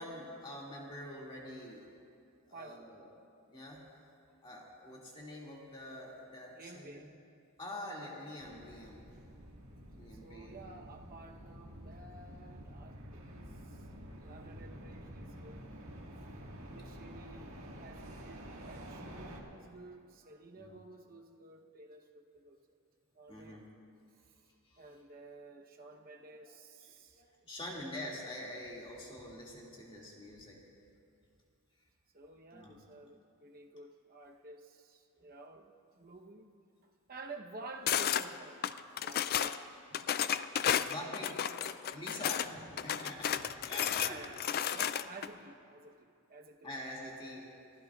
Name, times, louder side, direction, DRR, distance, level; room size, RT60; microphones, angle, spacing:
voice 1, 0.0-1.9 2.5-3.0 3.5-3.8 4.4-7.1 7.6-9.0 10.0-10.6 20.6-20.8 23.3-23.7 24.7-24.8 27.5-30.6 32.5-32.8 40.5-41.4 41.9-44.3 46.6-47.5, left 1 dB, 25° left, -3 dB, 2.3 m, -45 dB
voice 2, 2.5-3.1 6.5-7.1 10.1-13.9 14.2-15.7 16.6-17.5 17.8-22.6 23.1-23.6 24.2-24.3 24.8-27.5 32.1-36.5 36.8-40.1 44.0-46.8, right 3 dB, 40° right, 2 dB, 1.0 m, -52 dB
sound 1, 8.4-19.4, equal, 70° right, 1.8 m, -49 dB
sound 2, 37.9-38.2 38.6-39.6 39.9-42.5 42.8-45.3, left 9 dB, 45° left, 0.3 m, -32 dB
27.5 x 15.5 x 2.4 m, 2.5 s
head